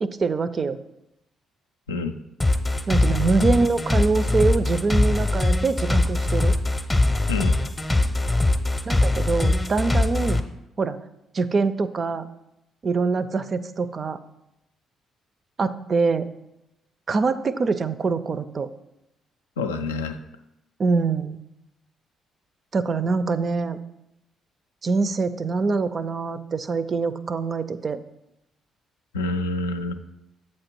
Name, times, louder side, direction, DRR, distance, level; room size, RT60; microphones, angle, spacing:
voice 1, 0.0-0.8 2.9-6.5 8.9-10.4 10.8-11.0 11.3-12.3 12.8-14.2 15.6-16.3 17.1-18.7 20.8-21.4 22.7-23.8 24.8-28.0, right 4 dB, 40° right, 13 dB, 0.4 m, -24 dB
sound 1, 2.4-10.4, left 2 dB, 20° left, 0.6 m, -21 dB
voice 2, 19.6-20.2 29.1-29.9, left 3 dB, 80° left, 7 dB, 0.3 m, -27 dB
7.7 x 4.3 x 4.4 m, 0.89 s
figure-of-eight pair, 40°, 0 cm